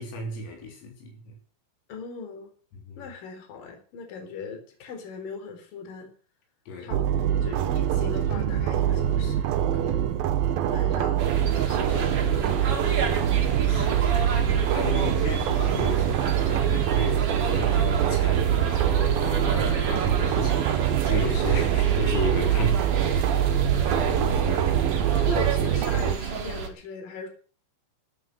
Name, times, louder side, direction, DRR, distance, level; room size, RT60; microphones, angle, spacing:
voice 1, 0.0-1.4 2.9-3.1 6.7-6.9 13.7-22.9 25.1-25.2, left 2 dB, 80° left, 6.1 m, -34 dB
voice 2, 1.9-2.5 3.0-6.1 6.8-10.0 10.7-11.3 11.7-13.2 24.0-24.8 25.1-27.3, left 5 dB, 45° left, 5.2 m, -39 dB
sound 1, 6.9-26.2, right 10 dB, 90° right, 2.1 m, -24 dB
sound 2, 7.1-23.2, right 6 dB, 60° right, 4.2 m, -42 dB
sound 3, 11.2-26.7, right 6 dB, 45° right, 2.2 m, -29 dB
13.5 x 10.5 x 7.7 m
omnidirectional pair, 5.8 m